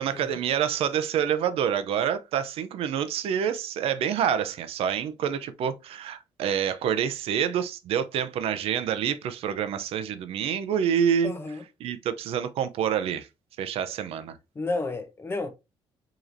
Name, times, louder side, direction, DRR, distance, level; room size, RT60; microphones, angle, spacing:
voice 1, 0.0-11.3 11.8-13.3 13.6-14.4, right 8 dB, 80° right, 0.6 m, -27 dB
voice 2, 11.2-11.6 14.5-15.5, left 2 dB, 25° left, 0.8 m, -31 dB
5.0 x 3.0 x 2.6 m
cardioid pair, 130°, 10 cm